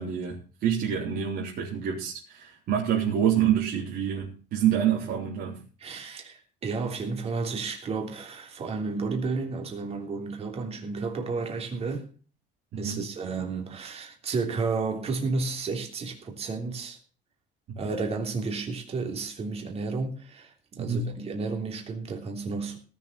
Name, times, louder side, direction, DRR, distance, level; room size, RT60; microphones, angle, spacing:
voice 1, 0.0-5.6 12.7-13.1 17.7-17.8 20.8-21.1, right 9 dB, 55° right, 3.6 m, -27 dB
voice 2, 5.8-12.1 12.8-17.0 17.7-22.8, right 4 dB, 30° right, 3.2 m, -32 dB
18.0 x 6.9 x 5.9 m
cardioid pair, 160°, 19 cm